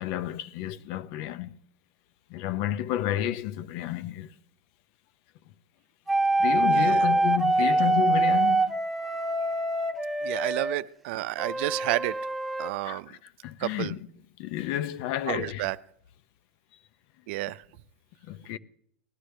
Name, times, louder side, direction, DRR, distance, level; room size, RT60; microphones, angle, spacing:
voice 1, 0.0-1.6 2.3-4.3 6.4-8.7 12.8-13.2 13.4-14.0 14.4-15.7 18.2-18.6, left 12 dB, 55° left, 0.7 m, -31 dB
sound 1, 6.1-10.8 11.4-12.7, right 2 dB, ahead, 1.3 m, -25 dB
voice 2, 6.7-7.0 7.6-7.9 10.2-12.3 12.6-13.2 13.6-13.9 15.3-15.8 17.3-17.6, right 18 dB, 65° right, 0.5 m, -31 dB
19.0 x 11.5 x 3.3 m
hypercardioid pair, 105°, 7 cm